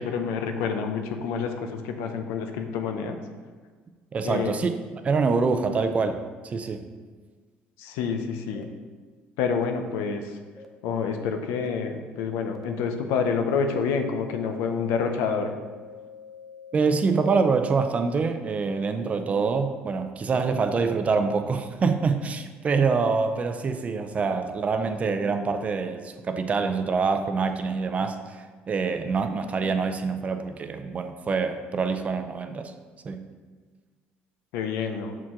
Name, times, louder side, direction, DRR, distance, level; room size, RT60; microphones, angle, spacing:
voice 1, 0.0-3.2 4.2-4.6 7.8-8.7 9.4-10.4 10.8-15.5 34.5-35.2, left 6 dB, 90° left, 5 dB, 0.6 m, -28 dB
voice 2, 4.1-4.7 5.0-6.9 16.7-32.7 33.0-33.3, right 4 dB, 35° right, 8 dB, 0.5 m, -25 dB
sound 1, 8.5-8.6 9.5-9.6 10.6-10.7 11.6-11.7 12.5-12.6 13.2-13.3 13.7-13.8 14.2-17.4, left 6 dB, 5° left, 0.7 m, -45 dB
6.0 x 4.5 x 3.7 m, 1.5 s
cardioid pair, 100°, 4 cm